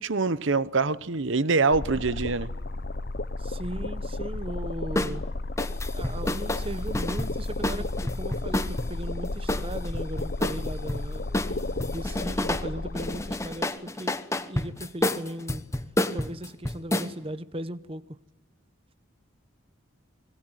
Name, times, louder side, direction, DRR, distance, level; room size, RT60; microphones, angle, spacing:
voice 1, 0.0-2.5, right 4 dB, 65° right, 0.9 m, -24 dB
sound 1, 1.7-13.6, left 2 dB, 45° left, 0.9 m, -33 dB
voice 2, 3.4-5.2 5.9-15.6 16.1-18.0, right 1 dB, 25° right, 0.9 m, -37 dB
sound 2, 5.0-5.2 5.6-8.9 9.5-11.0 11.3-12.7 12.9-17.1, left 1 dB, 15° left, 1.0 m, -29 dB
sound 3, 5.7-8.2, right 5 dB, 40° right, 7.5 m, -59 dB
26.0 x 22.0 x 9.3 m
head